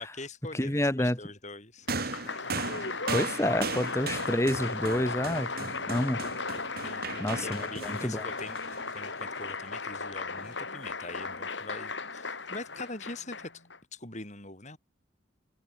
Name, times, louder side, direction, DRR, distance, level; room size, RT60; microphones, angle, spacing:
voice 1, 0.0-2.5 3.4-3.7 6.8-13.6 13.9-14.8, left 3 dB, 35° left, 4.4 m, -43 dB
voice 2, 0.5-1.2 3.1-5.5 5.9-6.2 6.9-8.2, left 1 dB, 15° left, 1.6 m, -29 dB
Applause, 1.9-13.8, left 4 dB, 60° left, 5.1 m, -36 dB
sound 1, 1.9-9.4 10.4-10.5, right 4 dB, 50° right, 2.8 m, -38 dB
head